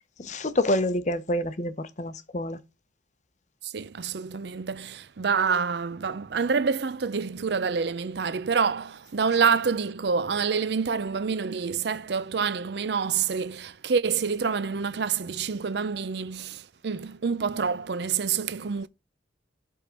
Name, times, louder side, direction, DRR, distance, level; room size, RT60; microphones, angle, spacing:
voice 1, 0.2-2.6, left 1 dB, 40° left, 0.8 m, -27 dB
voice 2, 3.6-18.9, right 5 dB, 60° right, 0.5 m, -27 dB
7.4 x 3.7 x 5.1 m
head